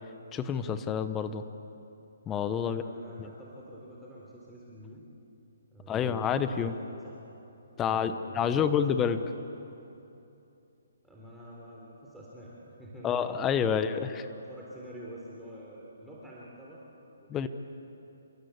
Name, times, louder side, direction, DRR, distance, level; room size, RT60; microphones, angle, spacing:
voice 1, 0.3-1.4 2.3-2.8 5.9-6.7 7.8-9.2 13.0-14.1 17.3-17.5, left 7 dB, 15° left, 10 dB, 0.9 m, -28 dB
voice 2, 2.6-5.0 5.7-6.5 6.7-7.2 7.7-9.2 11.0-17.5, right 1 dB, 5° right, -6 dB, 3.8 m, -48 dB
28.5 x 23.0 x 8.2 m, 2.8 s
hypercardioid pair, 150°, 0 cm